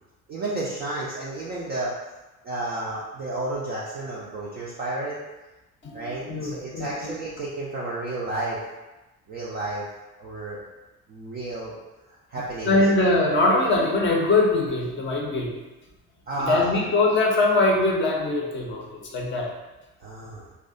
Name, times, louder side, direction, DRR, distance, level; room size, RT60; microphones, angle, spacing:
voice 1, 0.3-1.9 2.4-5.2 5.9-8.6 9.3-9.9 10.2-10.6 11.1-11.7 12.1-12.8 16.3-16.9 20.0-20.5, right 2 dB, 25° right, -6 dB, 0.3 m, -31 dB
voice 2, 5.8-7.1 12.6-15.6 16.4-19.5, left 2 dB, 25° left, -1 dB, 0.6 m, -22 dB
2.6 x 2.1 x 2.5 m, 1.1 s
figure-of-eight pair, 55°, 45 cm